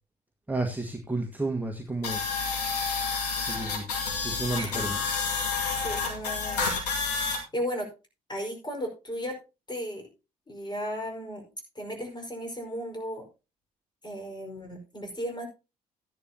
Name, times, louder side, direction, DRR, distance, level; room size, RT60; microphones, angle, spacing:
voice 1, 0.5-2.5 3.4-3.9 4.2-5.0, right 2 dB, 10° right, 2 dB, 1.6 m, -32 dB
sound 1, 2.0-7.4, left 4 dB, 85° left, 2.2 m, -29 dB
voice 2, 4.5-4.9 5.8-6.7 7.1-7.9 8.3-9.4 9.7-10.1 10.5-11.5 11.7-13.2 14.0-15.5, equal, 20° left, 4 dB, 5.0 m, -35 dB
14.0 x 10.5 x 2.9 m, 0.29 s
figure-of-eight pair, 50°, 20 cm